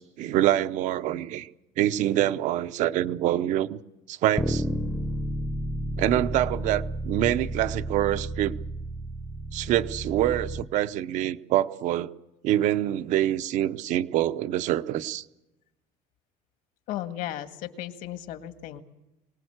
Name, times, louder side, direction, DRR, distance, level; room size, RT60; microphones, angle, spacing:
voice 1, 0.0-1.5 1.8-3.8 4.1-4.6 6.0-8.5 9.5-12.1 12.4-15.2, right 13 dB, 50° right, 12 dB, 0.8 m, -25 dB
Bass guitar, 4.4-10.6, right 1 dB, 5° left, 0.8 m, -32 dB
voice 2, 16.9-18.8, left 13 dB, 60° left, 9 dB, 1.7 m, -35 dB
24.0 x 19.0 x 8.0 m, 0.95 s
cardioid pair, 175°, 16 cm